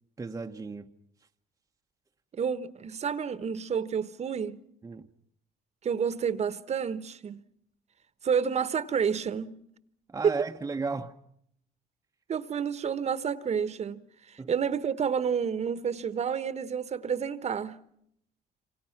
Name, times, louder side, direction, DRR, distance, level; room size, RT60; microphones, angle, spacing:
voice 1, 0.2-0.9 4.8-5.1 10.1-11.1 14.4-14.5, right 4 dB, 20° right, 1.0 m, -34 dB
voice 2, 2.3-4.6 5.8-7.4 8.2-9.5 10.2-10.3 12.3-17.8, right 7 dB, 40° right, 1.3 m, -29 dB
28.0 x 25.5 x 5.9 m
cardioid pair, 110°, 17 cm